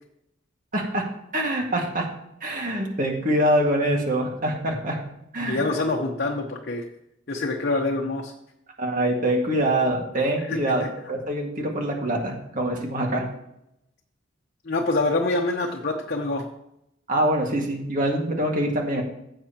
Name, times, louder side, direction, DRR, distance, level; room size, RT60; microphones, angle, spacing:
voice 1, 0.7-1.0 1.3-2.1 2.4-5.0 5.3-5.6 8.8-13.2 17.1-19.0, right 1 dB, 45° right, 1 dB, 1.9 m, -24 dB
voice 2, 5.4-6.8 7.3-8.3 10.4-10.9 14.6-16.4, left 2 dB, 55° left, 1 dB, 1.0 m, -26 dB
15.5 x 7.8 x 3.0 m, 0.81 s
head